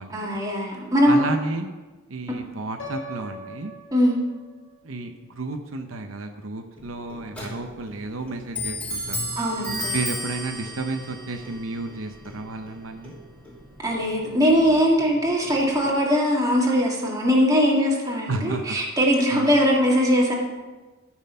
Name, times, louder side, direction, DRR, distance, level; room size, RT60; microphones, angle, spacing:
voice 1, 0.1-1.3 3.9-4.2 9.4-10.0 13.8-20.3, equal, 15° right, -3 dB, 2.0 m, -21 dB
voice 2, 1.0-1.7 2.1-3.7 4.8-9.2 9.9-13.1 18.3-18.8 19.3-19.5, right 3 dB, 80° right, 5 dB, 0.8 m, -32 dB
Piano, 2.8-4.8, equal, 70° left, 1.5 m, -39 dB
Clock, 6.8-16.0, equal, 5° left, 2.8 m, -35 dB
12.5 x 6.3 x 5.6 m, 1.2 s
head